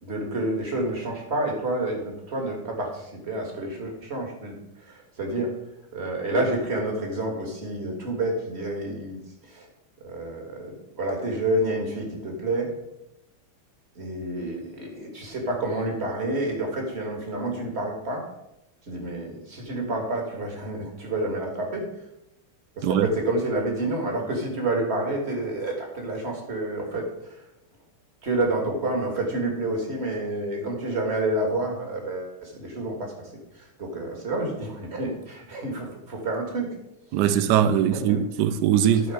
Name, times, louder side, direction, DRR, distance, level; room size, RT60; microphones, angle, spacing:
voice 1, 0.0-5.6 5.9-9.7 10.0-12.7 14.0-18.3 18.9-21.9 22.8-27.4 28.2-36.7 37.8-38.2 38.9-39.1, right 2 dB, 30° right, 2.0 m, -29 dB
voice 2, 37.1-39.1, right 9 dB, 90° right, 0.9 m, -21 dB
12.0 x 4.4 x 4.9 m
omnidirectional pair, 2.3 m